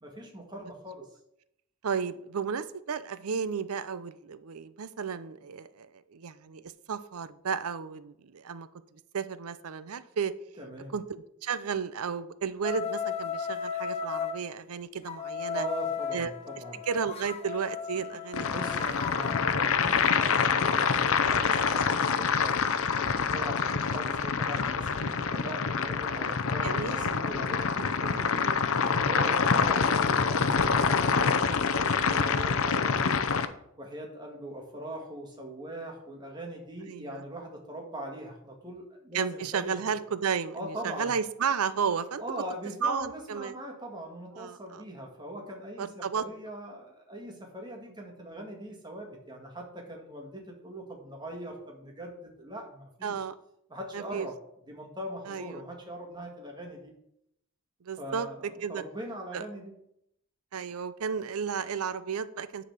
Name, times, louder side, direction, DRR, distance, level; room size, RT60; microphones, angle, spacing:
voice 1, 0.0-1.1 10.6-10.9 15.5-16.8 18.5-28.3 29.0-33.3 33.8-39.8 40.5-41.1 42.2-53.3 53.7-54.3 54.7-56.9 58.0-59.8, right 1 dB, 20° right, 1 dB, 1.8 m, -41 dB
voice 2, 1.8-8.7 9.1-10.3 10.9-15.6 16.1-16.3 16.9-18.5 26.6-27.1 28.0-28.4 29.2-29.3 33.3-33.5 36.9-37.2 39.1-42.2 42.8-43.5 44.3-44.8 45.8-46.3 53.0-53.3 53.9-54.3 55.3-55.5 57.8-58.3 58.6-58.8 59.3-59.4 60.5-62.6, right 6 dB, 85° right, 15 dB, 0.5 m, -33 dB
sound 1, 12.6-14.4 15.1-19.5, left 7 dB, 30° left, 0.5 m, -35 dB
sound 2, 18.3-33.5, left 5 dB, 70° left, 0.6 m, -26 dB
9.9 x 4.1 x 6.5 m, 0.77 s
head